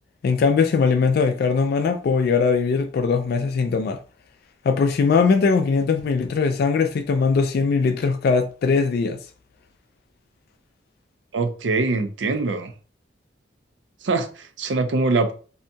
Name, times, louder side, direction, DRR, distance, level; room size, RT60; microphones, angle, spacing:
voice 1, 0.2-4.0 4.6-9.2, left 5 dB, 60° left, 0.3 m, -20 dB
voice 2, 11.3-12.7 14.0-15.3, right 3 dB, 75° right, 0.5 m, -23 dB
2.7 x 2.2 x 2.7 m
head